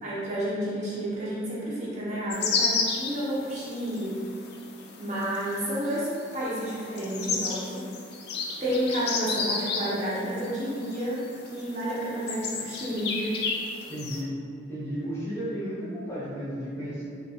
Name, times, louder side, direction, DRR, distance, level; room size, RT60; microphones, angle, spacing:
voice 1, 0.0-4.2 5.0-7.9 8.6-13.4, equal, 35° right, -8 dB, 0.8 m, -30 dB
sound 1, 2.3-14.2, left 4 dB, 55° left, 0.4 m, -33 dB
voice 2, 13.9-14.3 14.7-17.0, equal, 15° left, -10 dB, 0.8 m, -33 dB
3.5 x 2.9 x 2.3 m, 2.4 s
head